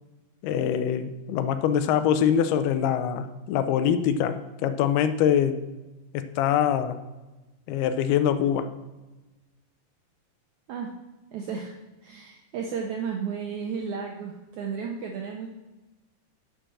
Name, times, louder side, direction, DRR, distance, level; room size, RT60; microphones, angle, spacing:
voice 1, 0.4-5.6 6.1-7.0 7.7-8.7, left 9 dB, 85° left, 10 dB, 2.7 m, -24 dB
voice 2, 11.3-11.7 12.0-15.5, right 6 dB, 80° right, 1 dB, 1.7 m, -33 dB
10.0 x 6.7 x 6.1 m, 1.1 s
omnidirectional pair, 4.4 m